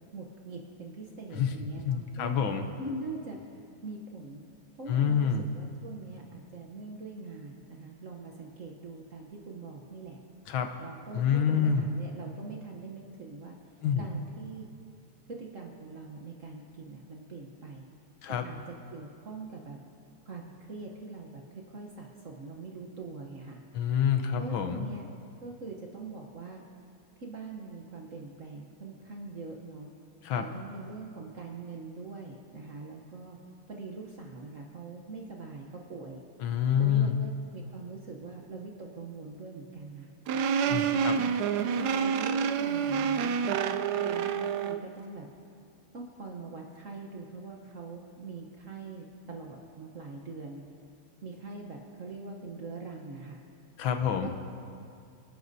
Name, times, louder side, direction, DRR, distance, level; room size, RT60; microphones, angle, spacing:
voice 1, 0.1-2.5 2.8-3.5 3.8-4.4 4.8-10.2 10.8-13.6 14.0-14.7 15.3-17.9 18.3-19.8 20.2-23.6 24.3-25.1 25.4-26.6 27.2-29.9 30.3-33.4 33.7-36.2 36.8-40.1 40.6-45.3 45.9-50.7 51.2-53.4 54.2-54.3, right 3 dB, 50° right, 0 dB, 1.0 m, -43 dB
voice 2, 1.9-2.6 4.9-5.4 10.5-10.7 11.1-11.9 13.8-14.1 18.2-18.5 23.7-24.9 30.2-30.5 36.4-37.2 40.7-41.2 53.8-54.3, left 8 dB, 75° left, 7 dB, 1.5 m, -27 dB
sound 1, 40.3-44.8, right 7 dB, 85° right, 0.9 m, -28 dB
26.0 x 11.5 x 2.7 m, 2.4 s
omnidirectional pair, 2.3 m